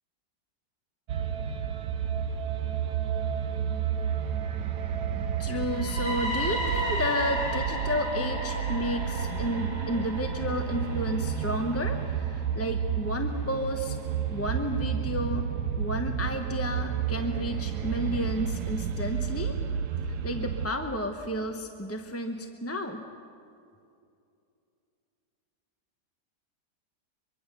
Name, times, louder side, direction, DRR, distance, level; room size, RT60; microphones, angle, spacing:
sound 1, 1.1-20.7, right 8 dB, 70° right, 1.4 m, -31 dB
voice 1, 5.4-14.0 14.3-15.5 15.8-19.5 20.0-23.0, left 1 dB, 10° left, 4 dB, 0.7 m, -32 dB
sound 2, 5.5-13.4, equal, 60° left, 4.6 m, -35 dB
24.0 x 23.5 x 6.8 m, 2.5 s
omnidirectional pair, 1.9 m